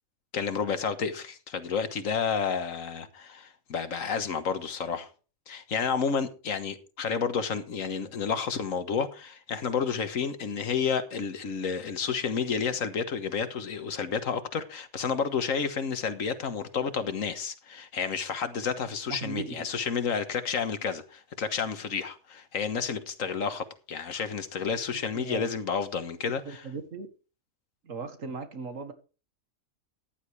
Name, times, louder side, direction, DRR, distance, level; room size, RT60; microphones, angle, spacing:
voice 1, 0.3-5.1 5.5-26.6, left 6 dB, 90° left, 1.7 m, -30 dB
voice 2, 19.1-19.7 25.1-25.5 26.5-27.1 27.8-28.9, right 4 dB, 80° right, 2.0 m, -37 dB
14.5 x 10.5 x 3.3 m
omnidirectional pair, 1.3 m